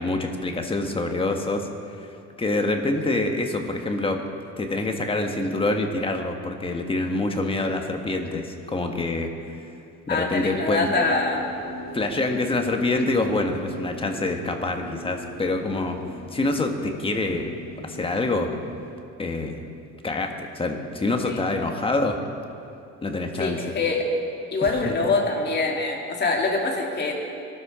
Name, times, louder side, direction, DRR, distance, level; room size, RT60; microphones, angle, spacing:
voice 1, 0.0-1.7 2.0-2.1 2.4-4.2 4.6-9.3 10.1-10.9 11.9-16.0 16.3-17.5 17.8-18.5 19.2-19.6 20.0-22.2 23.0-23.8 24.6-24.7, left 2 dB, 20° left, 3 dB, 1.5 m, -26 dB
voice 2, 10.1-11.4 21.2-21.4 23.4-24.1 24.5-27.1, left 3 dB, 35° left, 0 dB, 2.6 m, -24 dB
sound 1, 10.8-18.9, right 1 dB, 30° right, 2.9 m, -39 dB
22.5 x 12.5 x 5.0 m, 2.6 s
cardioid pair, 135°, 30 cm